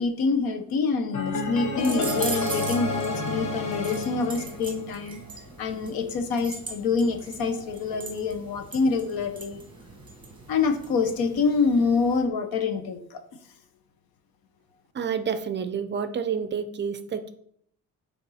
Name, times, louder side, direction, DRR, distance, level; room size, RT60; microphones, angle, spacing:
voice 1, 0.0-5.2 5.6-9.6 10.5-13.2, left 4 dB, 85° left, 8 dB, 0.9 m, -26 dB
sound 1, 1.1-5.2, left 2 dB, 60° left, 1.2 m, -30 dB
sound 2, 1.8-12.2, right 3 dB, 15° right, 1.4 m, -40 dB
voice 2, 14.9-17.3, right 7 dB, 30° right, 10 dB, 0.4 m, -29 dB
8.7 x 3.5 x 4.2 m, 0.68 s
cardioid pair, 170°, 35 cm